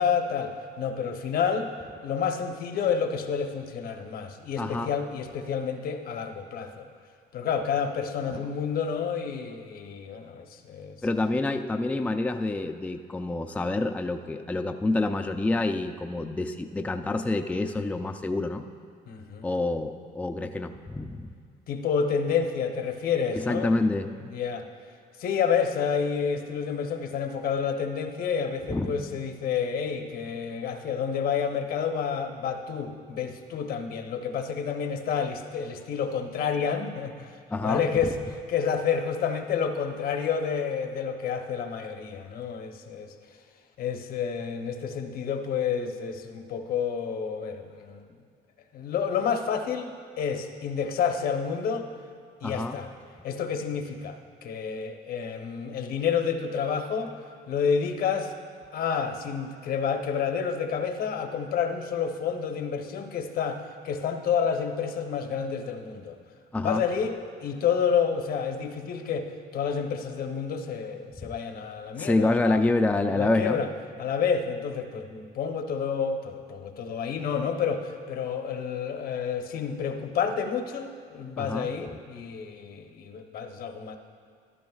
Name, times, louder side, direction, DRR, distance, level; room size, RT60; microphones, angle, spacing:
voice 1, 0.0-1.7 2.0-6.9 7.3-11.0 19.1-19.5 21.7-23.8 24.3-24.7 25.2-37.4 37.6-38.2 38.5-43.1 43.8-48.1 48.7-49.9 50.2-51.9 52.4-52.9 53.2-57.1 57.5-58.3 58.7-66.2 66.6-72.7 73.1-73.7 74.0-84.0, left 6 dB, 60° left, 5 dB, 0.9 m, -29 dB
voice 2, 4.6-4.9 8.3-8.5 11.0-18.6 19.4-21.3 23.3-24.1 28.7-28.9 37.5-37.8 52.4-52.8 66.5-66.8 71.2-71.3 72.0-73.6 81.4-81.7, left 2 dB, 10° left, 5 dB, 0.4 m, -27 dB
14.0 x 12.0 x 2.4 m, 2.1 s
cardioid pair, 110°, 17 cm